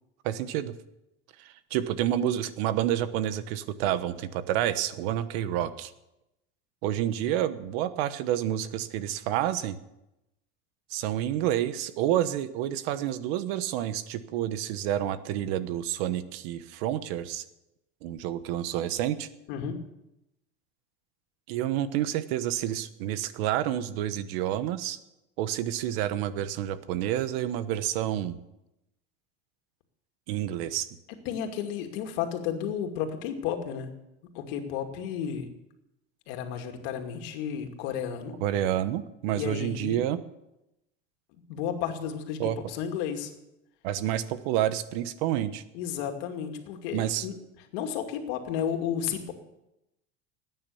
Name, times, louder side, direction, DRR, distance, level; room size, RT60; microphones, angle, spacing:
voice 1, 0.2-0.8 1.4-5.9 6.8-9.8 10.9-17.4 18.0-19.3 21.5-25.0 25.4-28.4 30.3-30.9 38.4-40.2 42.4-42.6 43.8-45.6 46.9-47.3, right 12 dB, 75° right, 13 dB, 1.2 m, -29 dB
voice 2, 19.5-19.9 31.3-33.9 34.3-35.5 36.3-38.4 39.4-40.0 41.5-43.3 45.7-47.3 47.7-49.3, left 8 dB, 75° left, 4 dB, 2.5 m, -32 dB
18.0 x 9.6 x 7.1 m, 0.90 s
cardioid pair, 150°, 30 cm